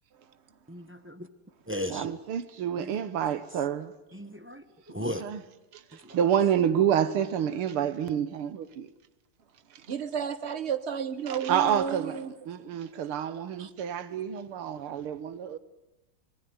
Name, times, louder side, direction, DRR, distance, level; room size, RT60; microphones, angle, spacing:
voice 1, 0.7-1.3 1.7-2.1 4.1-5.2, left 1 dB, 10° right, 0.5 m, -35 dB
voice 2, 1.9-3.9 5.0-5.4 5.7-8.9 11.3-12.2 12.5-15.6, right 9 dB, 80° right, 2.0 m, -28 dB
voice 3, 9.9-12.3 13.6-13.7, right 7 dB, 45° right, 1.0 m, -32 dB
25.0 x 18.5 x 9.6 m
omnidirectional pair, 2.4 m